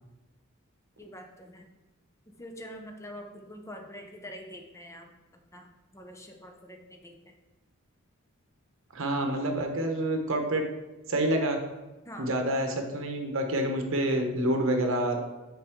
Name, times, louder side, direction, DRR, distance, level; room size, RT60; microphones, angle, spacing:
voice 1, 1.0-1.7 2.4-5.1 5.5-7.4 12.1-12.3, equal, 15° left, 3 dB, 0.6 m, -45 dB
voice 2, 8.9-10.6 11.1-11.6 12.2-15.2, right 1 dB, 65° right, 4 dB, 1.0 m, -27 dB
5.7 x 5.3 x 3.6 m, 1.1 s
head